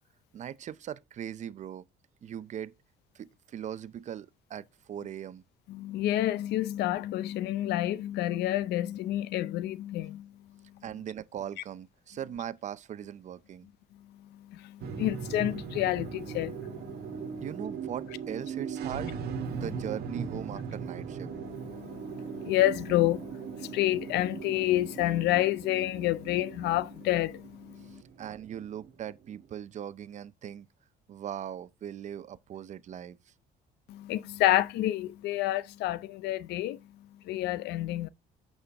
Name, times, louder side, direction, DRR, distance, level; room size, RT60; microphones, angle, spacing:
voice 1, 0.3-1.8 2.2-2.7 3.1-5.4 10.8-13.7 17.4-19.2 19.5-21.3 27.8-30.7 31.1-33.3, right 9 dB, 45° right, 0.5 m, -40 dB
voice 2, 5.7-10.3 14.5-17.4 19.5-19.6 21.3-28.0 33.9-36.8 37.3-38.1, left 14 dB, 80° left, 0.6 m, -29 dB
sound 1, 14.8-29.4, right 6 dB, 65° right, 1.4 m, -39 dB
8.7 x 5.5 x 3.4 m
cardioid pair, 110°, 17 cm